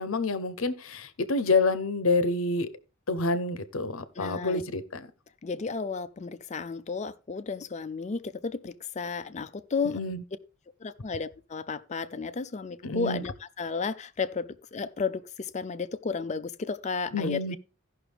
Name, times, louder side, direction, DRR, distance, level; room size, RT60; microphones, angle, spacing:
voice 1, 0.0-2.7 3.1-5.1 9.9-10.2 12.8-13.2 17.1-17.6, left 3 dB, 70° left, 0.8 m, -28 dB
voice 2, 4.2-4.6 5.4-10.0 10.8-17.6, left 4 dB, 35° left, 0.4 m, -33 dB
15.0 x 5.9 x 3.4 m
head